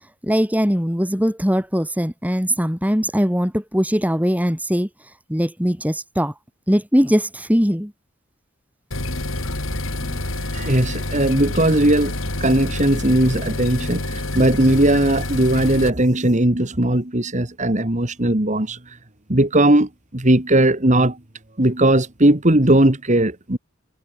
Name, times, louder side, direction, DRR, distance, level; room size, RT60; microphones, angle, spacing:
voice 1, 0.2-4.9 5.3-6.3 6.7-7.9, equal, 10° right, 7.0 m, -20 dB
sound 1, 8.9-15.9, left 1 dB, 70° left, 4.6 m, -27 dB
voice 2, 10.0-19.0 19.3-21.2 21.6-23.6, right 1 dB, 35° right, 2.2 m, -18 dB
head